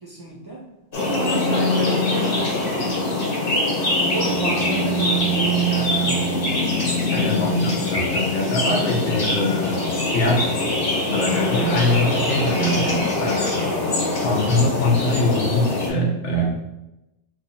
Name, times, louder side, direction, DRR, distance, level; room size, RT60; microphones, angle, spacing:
voice 1, 0.0-0.7 1.0-2.9 4.1-6.3, right 1 dB, 30° right, -5 dB, 0.4 m, -31 dB
sound 1, 0.9-15.9, left 1 dB, 55° left, 1.1 m, -23 dB
voice 2, 7.1-10.5 11.0-13.6 14.2-16.5, left 1 dB, 90° left, 0 dB, 1.1 m, -23 dB
3.0 x 2.6 x 4.0 m, 0.94 s
omnidirectional pair, 1.2 m